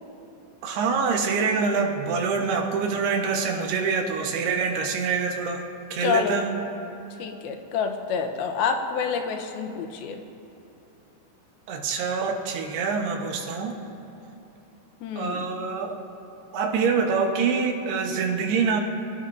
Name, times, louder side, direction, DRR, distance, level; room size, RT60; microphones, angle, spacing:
voice 1, 0.6-5.6 5.9-6.5 11.7-13.8 15.2-16.0 16.5-18.8, right 5 dB, 90° right, 2 dB, 3.3 m, -25 dB
voice 2, 6.0-6.4 7.2-10.2 15.0-15.4, left 6 dB, 80° left, 5 dB, 2.8 m, -27 dB
27.0 x 17.0 x 2.7 m, 2.8 s
omnidirectional pair, 4.4 m